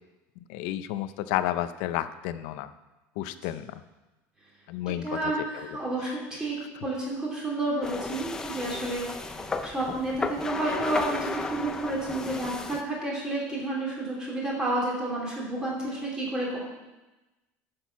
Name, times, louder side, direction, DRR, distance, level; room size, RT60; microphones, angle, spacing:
voice 1, 0.5-2.7 3.2-3.8 4.7-5.2 5.5-5.7, left 13 dB, 65° left, 12 dB, 0.6 m, -31 dB
voice 2, 4.9-16.6, right 2 dB, 15° right, -4 dB, 2.6 m, -31 dB
sound 1, 7.8-12.8, left 3 dB, 10° left, 0.4 m, -34 dB
10.0 x 6.5 x 5.9 m, 1.1 s
cardioid pair, 180°, 6 cm